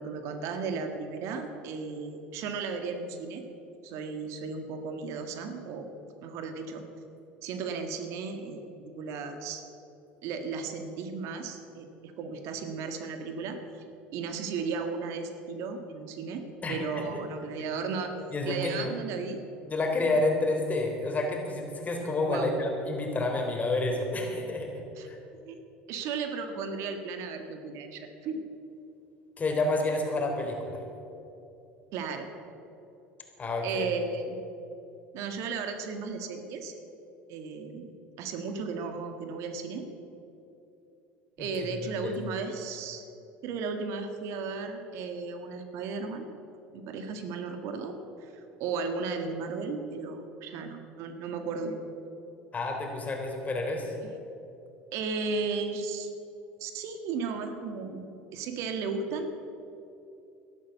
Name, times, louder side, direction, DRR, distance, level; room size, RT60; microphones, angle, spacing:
voice 1, 0.0-3.4 3.8-5.9 6.2-6.8 7.4-9.6 10.2-13.6 14.1-16.4 16.7-18.2 18.4-19.4 22.2-22.6 25.0-25.6 25.9-28.4 31.9-32.3 33.6-34.4 35.1-36.7 37.3-37.9 38.2-39.9 41.4-43.0 43.4-46.3 46.7-51.8 54.9-56.1 56.6-58.0 58.3-59.3, right 4 dB, 65° right, 6 dB, 1.7 m, -35 dB
voice 2, 16.6-17.2 18.3-18.9 19.6-25.2 29.4-30.8 33.4-33.9 41.4-42.1 52.5-54.0, left 2 dB, 30° left, 2 dB, 3.6 m, -30 dB
13.0 x 11.5 x 8.1 m, 2.8 s
supercardioid pair, 80°, 5 cm